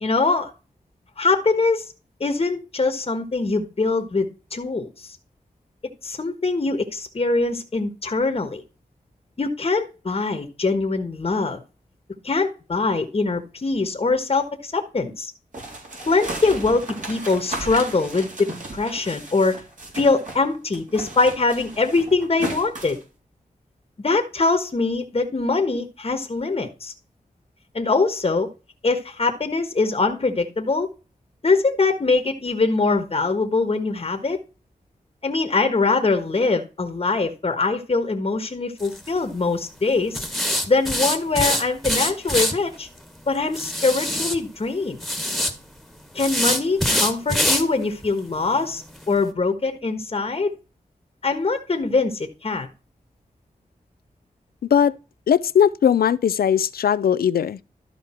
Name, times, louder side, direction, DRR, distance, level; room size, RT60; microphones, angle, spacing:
voice 1, 0.0-0.5 1.2-1.9 2.2-5.2 6.0-8.6 9.4-11.6 12.2-15.3 16.1-19.6 19.9-23.0 24.0-26.9 27.7-28.5 28.8-30.9 31.4-34.4 35.2-40.2 40.7-42.9 43.3-45.0 46.1-50.5 51.2-52.7, left 3 dB, 40° left, 1.4 m, -23 dB
sound 1, 15.5-20.4 20.7-23.0, right 2 dB, 55° right, 3.9 m, -35 dB
sound 2, 38.8-39.1 40.1-42.5 43.5-44.4 45.0-45.5 46.2-47.6 48.0-48.1 48.5-48.6 49.0-49.1, equal, ahead, 1.7 m, -23 dB
voice 2, 55.3-57.6, left 8 dB, 85° left, 0.5 m, -19 dB
12.5 x 5.1 x 4.4 m
wide cardioid pair, 75°, 15 cm